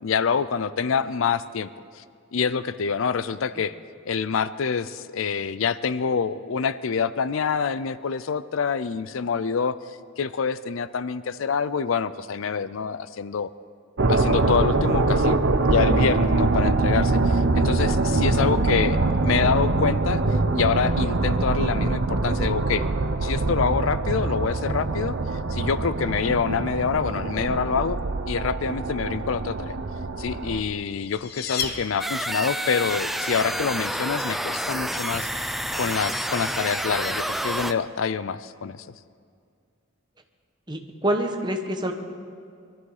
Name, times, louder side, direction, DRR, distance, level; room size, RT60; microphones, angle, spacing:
voice 1, 0.0-1.7 2.0-2.1 2.3-3.7 4.1-9.8 10.2-13.5 14.1-20.2 20.5-22.9 23.2-25.2 25.5-28.0 28.3-29.8 30.2-35.3 35.8-38.9, left 6 dB, 75° left, 16 dB, 0.5 m, -26 dB
sound 1, 14.0-30.6, right 2 dB, 65° right, 0.8 m, -23 dB
sound 2, 30.7-32.6, left 6 dB, 50° left, 1.0 m, -33 dB
sound 3, 32.0-37.7, equal, ahead, 0.3 m, -29 dB
voice 2, 40.7-41.9, right 1 dB, 20° right, 4 dB, 1.1 m, -26 dB
21.5 x 13.0 x 4.8 m, 2.3 s
head